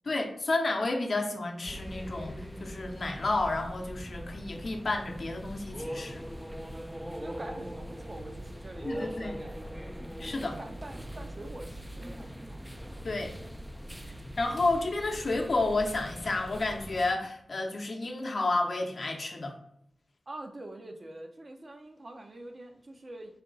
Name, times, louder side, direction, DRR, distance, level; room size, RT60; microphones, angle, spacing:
voice 1, 0.0-6.2 8.8-9.4 10.2-10.6 13.0-13.3 14.4-19.6, left 2 dB, 60° left, 2 dB, 0.7 m, -31 dB
sound 1, 1.6-17.1, equal, 5° right, 0.3 m, -41 dB
voice 2, 7.2-9.6 10.6-12.7 20.3-23.4, right 1 dB, 45° right, 3 dB, 0.6 m, -45 dB
4.1 x 2.2 x 3.8 m, 0.76 s
cardioid pair, 45°, 0 cm